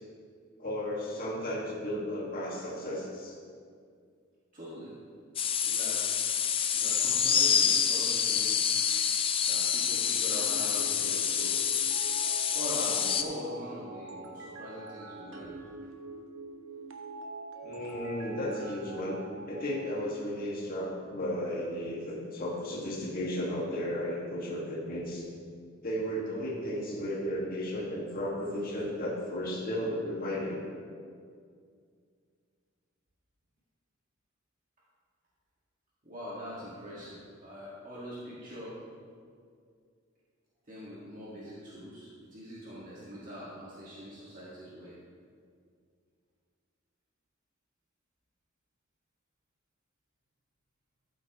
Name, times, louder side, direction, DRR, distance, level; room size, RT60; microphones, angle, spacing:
voice 1, 0.6-3.3 7.3-7.4 12.9-13.0 17.6-25.3 25.8-30.6, equal, 45° left, -5 dB, 1.8 m, -34 dB
voice 2, 4.5-5.0 5.6-6.0 6.7-8.6 9.4-11.7 12.5-15.6 16.8-16.9 36.0-38.8 40.6-44.9, equal, 40° right, -8 dB, 1.7 m, -43 dB
sound 1, 5.4-13.2, left 8 dB, 25° left, 0.4 m, -27 dB
sound 2, 10.3-19.7, right 3 dB, 70° right, 1.0 m, -44 dB
13.0 x 8.5 x 3.0 m, 2.2 s
head